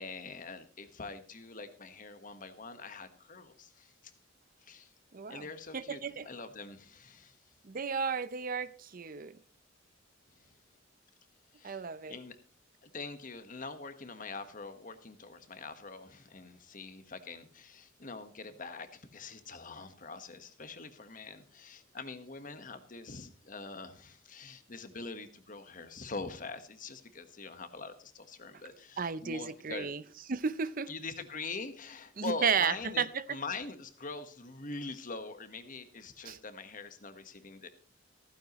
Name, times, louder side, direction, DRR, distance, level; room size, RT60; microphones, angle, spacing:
voice 1, 0.0-3.9 4.6-4.9 5.3-7.4 10.4-10.5 11.5-12.4 12.8-29.9 30.9-37.7, left 3 dB, 45° left, 1.5 m, -44 dB
voice 2, 5.1-5.5 5.7-6.3 7.6-9.4 11.6-12.2 29.0-30.0 30.3-30.9 32.2-33.2 36.2-36.4, right 6 dB, 50° right, 0.6 m, -33 dB
15.5 x 14.5 x 3.1 m
head